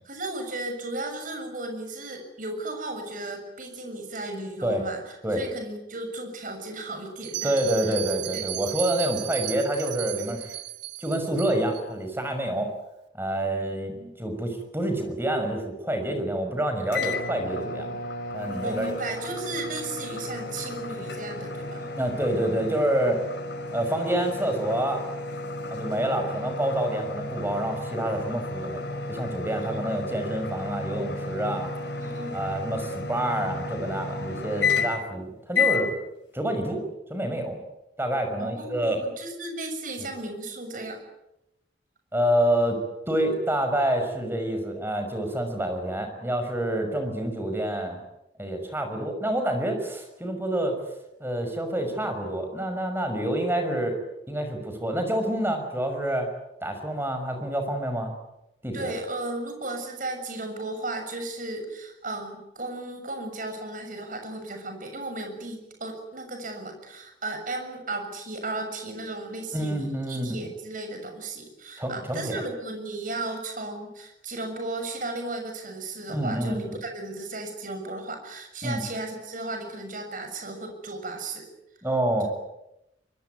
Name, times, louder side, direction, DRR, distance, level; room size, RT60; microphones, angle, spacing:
voice 1, 0.0-7.6 7.8-7.9 8.3-8.5 13.9-14.1 18.5-21.9 29.7-29.8 32.0-32.4 38.4-41.0 58.7-81.5, right 2 dB, 50° right, 5 dB, 6.8 m, -35 dB
Bell, 7.2-11.8, right 13 dB, 75° right, 1.9 m, -34 dB
voice 2, 7.4-10.6 11.0-12.7 13.1-17.9 18.3-18.9 22.0-23.2 23.7-25.0 25.7-31.7 32.3-35.9 36.3-36.8 37.1-37.6 38.0-39.0 42.1-42.8 43.1-48.0 48.4-50.8 51.2-54.0 54.3-56.3 56.6-58.1 58.6-58.9 69.5-70.4 71.8-72.4 76.1-76.6 78.6-78.8 81.8-82.3, right 1 dB, 15° right, 5 dB, 5.8 m, -27 dB
sound 1, 16.9-35.1 35.5-35.9, left 3 dB, 90° left, 5.3 m, -32 dB
25.0 x 23.0 x 9.5 m, 0.88 s
head